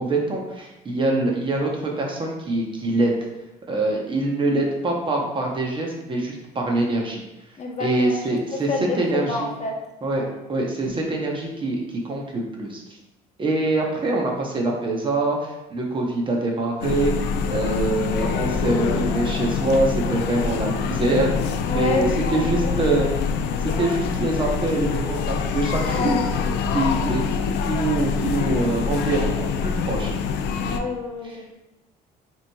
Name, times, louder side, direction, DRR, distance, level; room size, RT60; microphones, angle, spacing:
voice 1, 0.0-3.1 3.7-7.2 7.8-8.7 8.9-9.5 10.0-10.2 10.5-12.8 13.4-21.3 21.7-23.1 23.8-26.2 26.7-27.2 27.6-30.1, right 2 dB, 30° right, 0 dB, 0.8 m, -24 dB
voice 2, 7.6-8.2 8.7-9.7 10.2-10.3 21.6-22.7 23.3-23.9 24.3-24.4 25.9-26.9 30.6-31.5, left 3 dB, 40° left, 0 dB, 0.8 m, -29 dB
sound 1, 16.8-30.8, left 6 dB, 85° left, 0.4 m, -25 dB
5.5 x 3.1 x 2.3 m, 0.99 s
cardioid pair, 110°, 17 cm